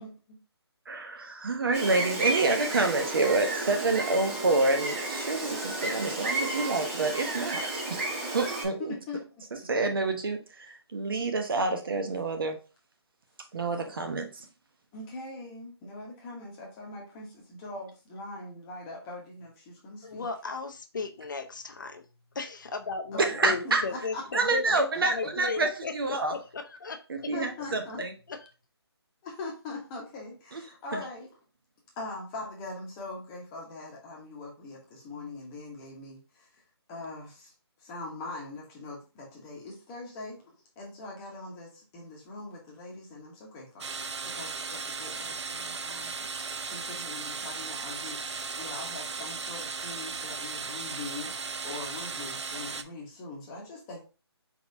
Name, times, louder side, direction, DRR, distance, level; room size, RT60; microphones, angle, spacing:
voice 1, 0.9-8.0 8.3-8.9 9.7-12.6 13.5-14.3 23.2-23.8 24.3-26.4 27.1-28.1 30.5-30.6 30.9-31.0, right 3 dB, 55° right, 6 dB, 0.9 m, -28 dB
Gull seagull, 1.7-8.6, right 2 dB, 25° right, 1.4 m, -32 dB
voice 2, 8.8-9.9 14.9-20.3 23.1-24.7 27.3-28.0 29.2-31.3 32.0-36.5 36.9-37.5 37.8-43.9 44.2-46.1 46.4-54.0, left 2 dB, 15° left, -2 dB, 1.0 m, -42 dB
voice 3, 20.0-22.1 22.3-27.3 28.3-28.5, left 4 dB, 45° left, 6 dB, 0.6 m, -36 dB
sound 1, 43.8-52.8, right 4 dB, 90° right, 0.5 m, -36 dB
4.4 x 4.0 x 2.7 m, 0.33 s
figure-of-eight pair, 165°, 14 cm